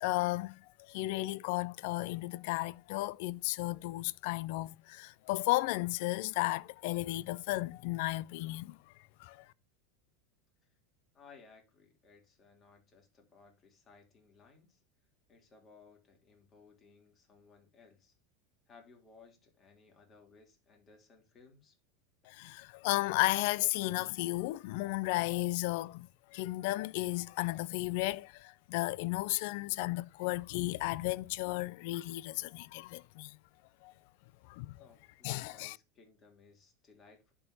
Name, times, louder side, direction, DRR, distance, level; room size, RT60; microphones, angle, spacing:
voice 1, 0.0-0.6 0.9-8.8 9.2-9.4 22.3-33.3 33.8-33.9 34.5-34.9 35.2-35.8, left 19 dB, 65° left, 0.4 m, -34 dB
voice 2, 11.1-14.8 15.3-18.1 18.7-21.8 34.8-37.3, left 4 dB, 35° left, 3.3 m, -61 dB
11.0 x 4.5 x 2.8 m
hypercardioid pair, 95°, 0 cm